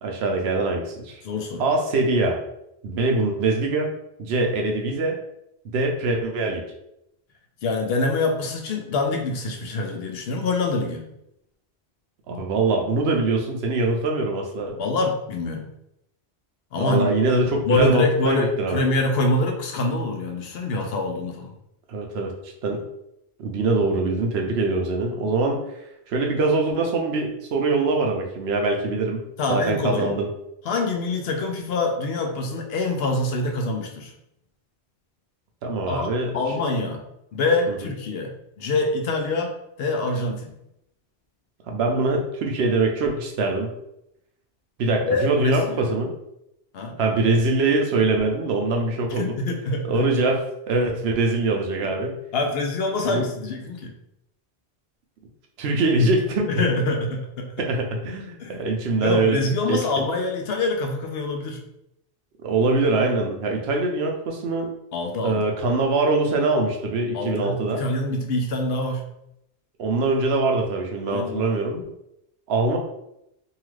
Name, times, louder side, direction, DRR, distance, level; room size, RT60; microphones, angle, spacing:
voice 1, 0.0-1.2 1.6-2.4 2.8-3.9 4.2-5.2 5.7-6.6 12.3-14.8 16.8-18.8 21.9-22.3 22.6-22.8 23.4-25.6 26.1-29.2 29.5-30.3 35.6-36.4 37.7-37.8 41.7-43.7 44.8-46.1 47.0-49.4 49.9-52.1 53.1-53.2 55.6-56.5 57.6-60.1 62.4-64.7 65.2-67.8 69.8-71.8 72.5-72.8, right 3 dB, 75° right, 2 dB, 0.8 m, -23 dB
voice 2, 1.2-1.7 7.6-11.0 14.8-15.7 16.7-17.1 17.6-21.5 29.4-30.1 30.6-34.1 35.9-37.0 37.3-39.5 39.8-40.5 45.0-45.9 46.7-46.9 49.1-50.1 52.3-53.9 56.5-57.5 58.4-58.6 59.0-61.6 64.9-65.4 67.1-69.1 71.1-71.6, left 2 dB, 70° left, 3 dB, 0.8 m, -25 dB
2.8 x 2.3 x 3.1 m, 0.81 s
omnidirectional pair, 1.1 m